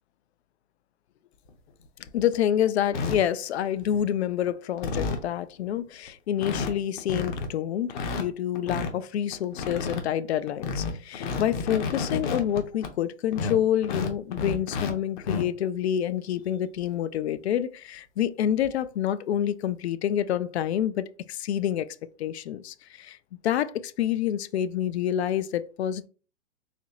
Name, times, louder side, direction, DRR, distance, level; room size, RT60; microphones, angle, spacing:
sound 1, 1.5-1.6 2.0-2.3 2.9-3.2 3.8-4.2 4.5-4.6 4.8-5.3 5.8-5.9 6.1-6.2 6.4-6.7 7.0-7.5 7.9-8.9 9.3-10.0 10.5-12.9 13.3-14.9 15.2-15.4 16.8-16.9 17.3-17.4 18.6-18.8, left 4 dB, 40° left, 0.8 m, -30 dB
voice 1, 2.1-23.2 23.4-26.1, left 10 dB, 65° left, 0.5 m, -28 dB
4.1 x 2.9 x 2.9 m
hypercardioid pair, 135°, 35 cm